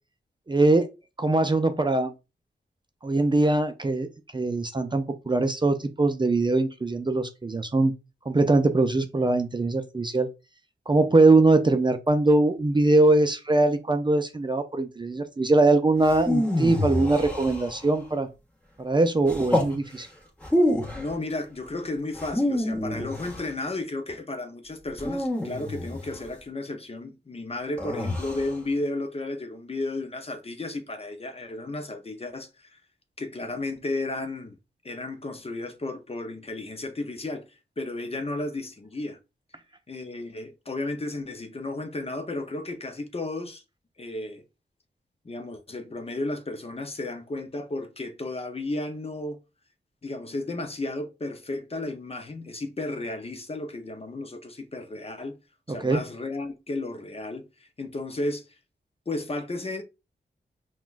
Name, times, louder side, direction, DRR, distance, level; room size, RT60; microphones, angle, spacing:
voice 1, 0.5-0.9 1.2-2.1 3.0-4.1 4.3-7.9 8.3-10.3 10.9-18.3 18.8-20.1 55.8-56.0, right 2 dB, 25° right, 0.4 m, -22 dB
sound 1, 16.0-18.0 19.3-19.8 20.4-21.1 22.1-23.5 25.0-26.2 27.8-28.5, left 1 dB, 5° left, 1.6 m, -27 dB
voice 2, 20.9-32.8 33.2-34.6 34.8-37.5 37.8-39.2 39.9-43.6 44.0-44.4 45.2-49.4 50.0-55.3 55.7-58.5 59.1-59.8, left 2 dB, 30° left, 0.6 m, -33 dB
5.8 x 2.3 x 2.4 m
wide cardioid pair, 85°, 19 cm